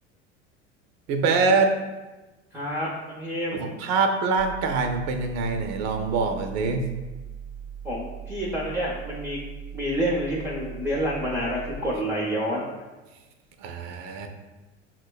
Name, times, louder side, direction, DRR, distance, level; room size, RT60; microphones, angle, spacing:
voice 1, 1.1-1.8 3.5-6.8 13.6-14.3, right 4 dB, 50° right, 5 dB, 0.5 m, -24 dB
voice 2, 2.5-3.8 7.8-9.4 9.7-12.7, equal, 5° right, -4 dB, 0.6 m, -28 dB
sound 1, 4.4-11.8, right 8 dB, 50° left, 0.7 m, -40 dB
5.9 x 2.1 x 2.2 m, 1.1 s
hypercardioid pair, 85°, 36 cm